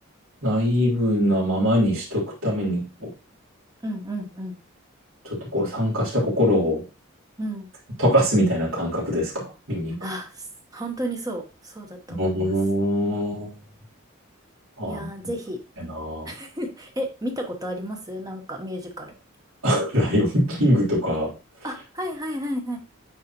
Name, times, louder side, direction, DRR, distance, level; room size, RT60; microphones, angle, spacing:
voice 1, 0.4-2.8 5.2-6.8 8.0-10.0 12.2-13.5 14.8-15.1 15.8-16.3 19.6-21.3, equal, 80° right, -6 dB, 3.3 m, -22 dB
voice 2, 3.8-4.6 7.4-7.7 10.0-10.5 10.7-12.5 14.9-15.6 16.2-19.2 21.6-22.8, equal, 15° right, 3 dB, 1.1 m, -32 dB
9.2 x 4.0 x 2.9 m, 0.30 s
head